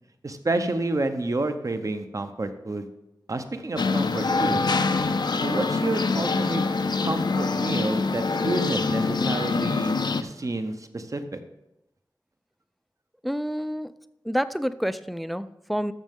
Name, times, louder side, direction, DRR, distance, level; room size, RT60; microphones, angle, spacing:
voice 1, 0.2-2.9 3.3-4.6 5.4-6.6 7.0-11.4, right 2 dB, 45° right, 8 dB, 0.8 m, -29 dB
sound 1, 3.8-10.2, left 4 dB, 65° left, 0.5 m, -25 dB
voice 2, 13.2-13.9 14.2-15.9, equal, ahead, 13 dB, 0.4 m, -28 dB
13.0 x 6.3 x 3.7 m, 0.89 s
wide cardioid pair, 75°, 8 cm